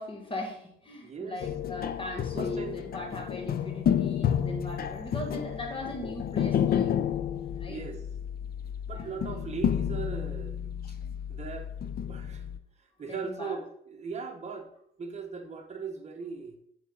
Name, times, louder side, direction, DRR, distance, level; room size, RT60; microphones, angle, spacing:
voice 1, 0.0-7.1 7.5-7.8 8.9-9.5 13.1-13.6, left 1 dB, 25° left, 1 dB, 1.9 m, -39 dB
voice 2, 1.0-1.4 2.3-2.8 7.7-8.0 8.9-10.6 10.9-11.0 11.3-11.7 12.1-12.5 12.8-14.7 15.0-16.6, right 5 dB, 35° right, 3 dB, 1.2 m, -39 dB
sound 1, 1.4-12.6, left 9 dB, 50° left, 0.5 m, -31 dB
7.1 x 4.1 x 4.0 m, 0.71 s
cardioid pair, 90°, 20 cm